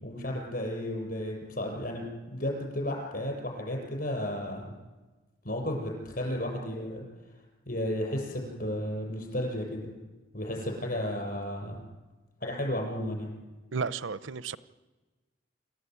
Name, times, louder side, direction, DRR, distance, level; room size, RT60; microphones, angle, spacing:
voice 1, 0.0-4.7 5.4-7.0 7.7-9.9 10.3-11.8 12.4-13.3, left 1 dB, 50° left, 7.6 m, -33 dB
voice 2, 13.7-14.6, right 5 dB, 85° right, 0.8 m, -33 dB
27.5 x 14.5 x 9.7 m
head